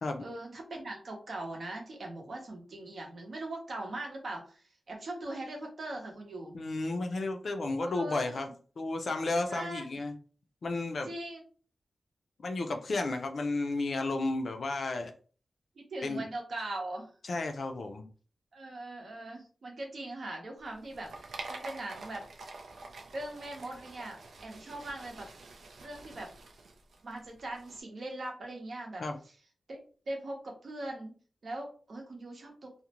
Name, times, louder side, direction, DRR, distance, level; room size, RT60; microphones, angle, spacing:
voice 1, 0.2-6.6 7.8-8.5 9.5-9.9 11.0-11.4 15.8-17.1 18.5-22.2 23.1-25.3 25.8-26.3 27.0-29.0 29.7-29.8 30.1-31.2 31.4-32.7, right 1 dB, 55° right, 1 dB, 0.8 m, -40 dB
voice 2, 6.5-8.5 8.8-10.1 10.6-11.1 12.4-15.1 16.0-16.2 17.2-18.1 29.0-29.2, left 2 dB, 55° left, 5 dB, 0.3 m, -32 dB
sound 1, 20.6-27.8, right 3 dB, 90° right, 0.4 m, -47 dB
2.4 x 2.1 x 2.9 m, 0.40 s
wide cardioid pair, 180°, 0 cm